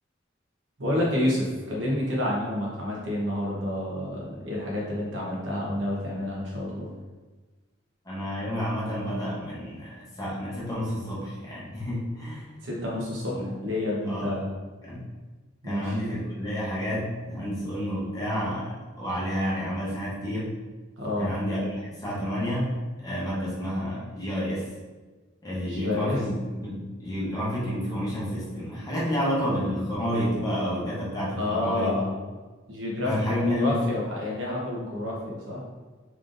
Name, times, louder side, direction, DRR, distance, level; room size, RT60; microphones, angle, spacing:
voice 1, 0.8-6.9 12.6-14.5 15.6-16.0 21.0-21.3 25.7-26.2 31.4-32.1 32.7-35.6, left 1 dB, 70° right, -4 dB, 1.0 m, -29 dB
voice 2, 8.1-12.4 13.3-13.4 14.1-14.4 14.8-15.0 15.6-18.7 19.0-20.5 21.2-24.7 25.4-32.0 33.0-33.8, equal, 20° left, -7 dB, 0.9 m, -30 dB
3.7 x 3.4 x 2.6 m, 1.3 s
head